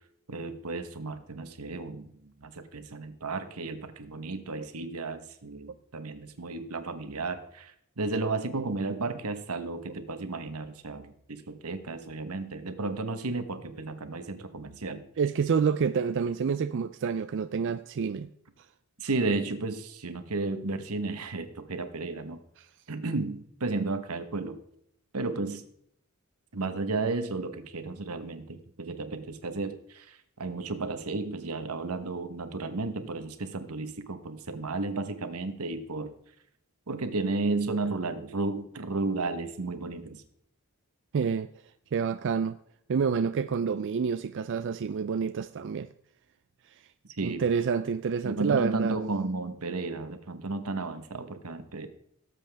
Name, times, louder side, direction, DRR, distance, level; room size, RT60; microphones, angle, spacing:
voice 1, 0.3-15.0 19.0-22.4 22.9-24.6 25.1-25.7 26.5-36.2 36.9-40.2 47.2-47.4 48.2-51.9, right 3 dB, 85° right, 1.2 m, -33 dB
voice 2, 15.2-18.3 41.1-41.5 41.9-42.6 42.9-45.9 47.2-49.0, right 6 dB, 55° right, 0.4 m, -28 dB
17.5 x 7.7 x 3.5 m
head